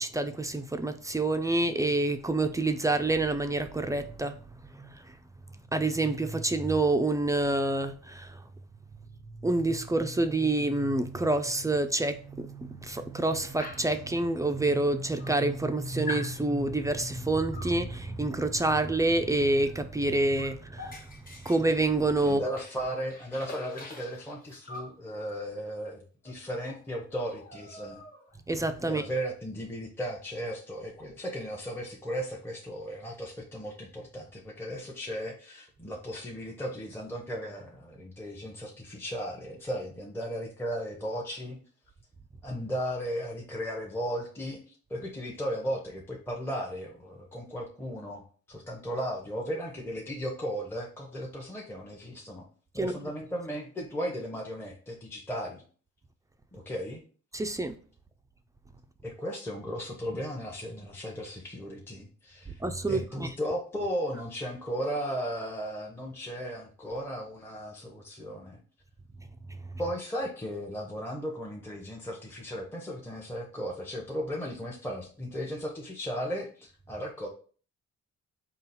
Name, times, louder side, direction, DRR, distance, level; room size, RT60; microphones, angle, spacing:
voice 1, 0.0-4.3 4.8-4.9 5.7-8.4 9.4-21.0 21.5-22.4 28.5-29.0 52.8-52.9 57.3-57.8 62.6-63.3, right 2 dB, 10° right, 0.3 m, -27 dB
Dog, 13.6-14.0 14.8-14.9 15.2-15.7 16.1-16.4 17.5-17.8 19.6-19.8 20.1-22.8 23.1-25.0 26.2-26.4 26.7-26.8 27.1-28.4, left 2 dB, 30° left, 1.1 m, -44 dB
voice 2, 22.2-28.0 28.9-41.6 42.4-52.5 52.7-55.6 56.5-57.0 59.0-62.6 62.9-68.6 69.8-77.3, equal, 10° left, 0.7 m, -36 dB
3.9 x 2.4 x 4.0 m
cardioid pair, 90°, 30 cm